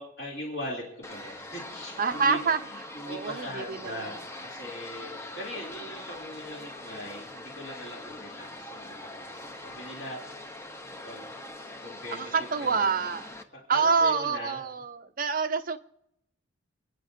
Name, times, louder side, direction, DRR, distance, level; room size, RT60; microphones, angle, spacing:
voice 1, 0.0-2.4 2.6-10.2 11.0-11.3 11.8-12.9 13.7-14.6, left 1 dB, 55° left, -3 dB, 2.9 m, -40 dB
sound 1, 1.0-13.4, left 1 dB, 15° left, 0.7 m, -42 dB
voice 2, 2.0-2.6 2.9-4.1 12.1-13.3 13.7-15.8, right 5 dB, 45° right, 8 dB, 0.6 m, -27 dB
29.5 x 10.0 x 2.7 m, 0.82 s
head